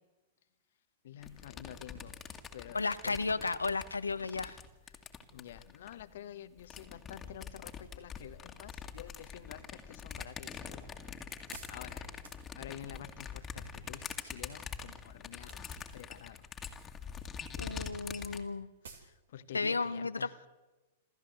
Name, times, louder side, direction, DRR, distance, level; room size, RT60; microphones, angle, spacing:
voice 1, 1.0-2.2 2.5-3.5 5.3-10.9 11.3-12.1 12.5-16.5 18.9-20.5, left 10 dB, 60° left, 12 dB, 1.3 m, -49 dB
sound 1, 1.2-6.0 6.6-18.4, left 6 dB, 20° left, 2.2 m, -44 dB
voice 2, 2.7-4.6 17.6-18.7 19.5-20.5, left 4 dB, 85° left, 14 dB, 1.0 m, -34 dB
sound 2, 11.5-12.9 15.3-16.0 16.3-16.9 17.1-17.3 17.6-17.7 17.9-18.0 18.3-18.4 18.8-19.2 19.5-19.6, right 5 dB, 70° right, 2.7 m, -54 dB
27.5 x 14.0 x 8.0 m, 1.1 s
figure-of-eight pair, 105°, 0 cm